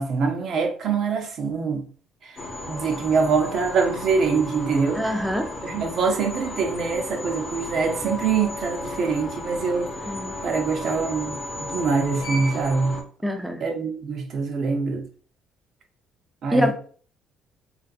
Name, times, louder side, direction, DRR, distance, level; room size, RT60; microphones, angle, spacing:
voice 1, 0.0-1.9 2.2-2.4 2.7-5.1 5.6-9.9 10.4-13.0 13.6-15.1 16.4-16.7, right 5 dB, 55° right, 0.6 m, -24 dB
sound 1, 2.4-13.0, left 1 dB, 45° left, 0.7 m, -34 dB
voice 2, 5.0-5.5 10.1-10.3 13.2-13.6 16.5-16.7, equal, ahead, 0.4 m, -24 dB
2.5 x 2.4 x 2.3 m
cardioid pair, 90°, 0 cm